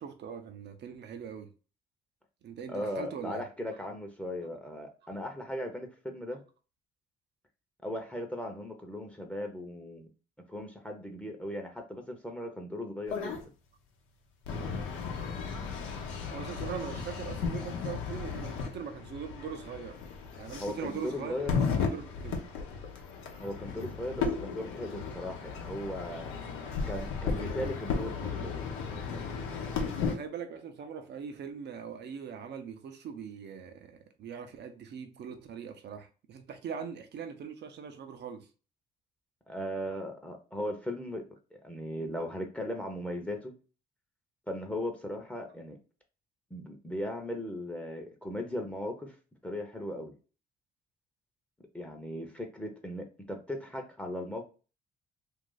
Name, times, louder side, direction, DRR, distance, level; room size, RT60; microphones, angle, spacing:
voice 1, 0.0-1.5 2.4-3.4 5.0-5.1 16.3-20.0 20.4-22.4 30.1-38.5, right 7 dB, 55° right, 0.7 m, -41 dB
voice 2, 2.7-6.4 7.8-10.1 10.5-13.4 20.6-21.6 23.4-26.3 26.9-28.6 39.5-41.2 41.5-43.5 44.5-45.8 46.5-49.1 49.4-50.1 51.7-54.4, left 1 dB, 5° left, 0.9 m, -37 dB
sound 1, 13.1-13.4 14.4-30.1, left 5 dB, 75° left, 0.8 m, -35 dB
2.6 x 2.4 x 3.8 m
hypercardioid pair, 55°, 21 cm